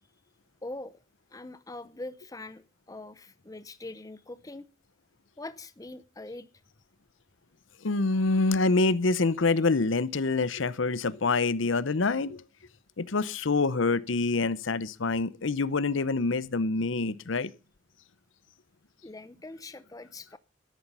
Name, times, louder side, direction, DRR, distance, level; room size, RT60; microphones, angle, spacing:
voice 1, 0.6-1.0 1.3-4.7 5.4-6.5 19.0-20.4, left 2 dB, 20° left, 0.6 m, -42 dB
voice 2, 7.8-12.4 13.0-17.5, left 3 dB, 80° left, 0.8 m, -26 dB
13.0 x 11.0 x 5.5 m
head